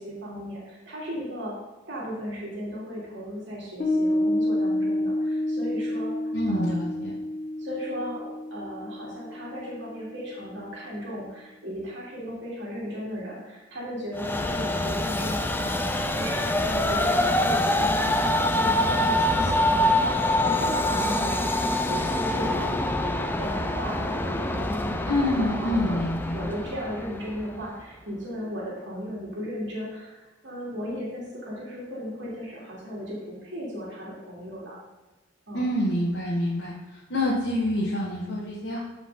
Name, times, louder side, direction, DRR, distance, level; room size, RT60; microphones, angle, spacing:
voice 1, 0.0-1.5 1.9-6.1 6.5-6.8 7.6-15.7 16.1-22.9 23.4-26.0 26.3-34.8 35.5-35.7, equal, 65° right, -6 dB, 2.9 m, -36 dB
Piano, 3.8-10.6, left 1 dB, 45° left, 1.5 m, -29 dB
voice 2, 6.3-7.2 25.1-26.5 35.5-36.7 37.1-38.8, left 1 dB, 65° left, -5 dB, 1.7 m, -26 dB
Train, 14.1-27.6, left 1 dB, 10° left, 0.5 m, -25 dB
14.5 x 5.1 x 3.8 m, 1.2 s
head